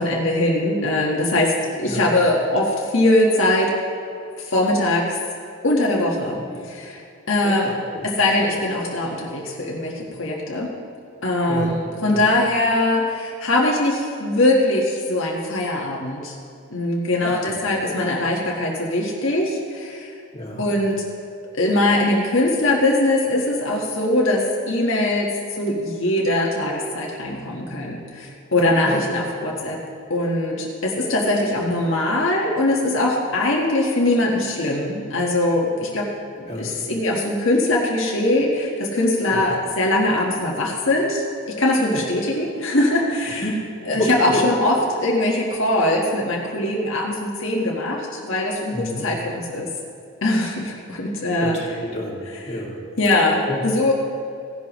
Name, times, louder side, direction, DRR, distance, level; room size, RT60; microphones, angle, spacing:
voice 1, 0.0-3.7 4.4-5.2 5.6-6.4 6.7-7.7 8.0-10.7 11.2-16.3 16.7-20.1 20.6-21.0 21.4-25.3 25.6-29.8 30.1-36.1 36.4-43.5 43.8-49.7 50.2-51.5 53.0-53.9, left 1 dB, 65° left, -2 dB, 1.4 m, -21 dB
voice 2, 7.4-8.1 11.5-11.7 12.1-12.3 17.2-17.5 20.3-20.7 28.8-29.0 36.5-36.7 39.3-39.6 42.1-42.3 43.4-43.6 43.9-44.4 48.7-49.0 51.4-51.6 51.9-52.8 53.5-53.6, left 1 dB, 30° left, -4 dB, 2.0 m, -29 dB
16.5 x 11.0 x 3.1 m, 2.4 s
head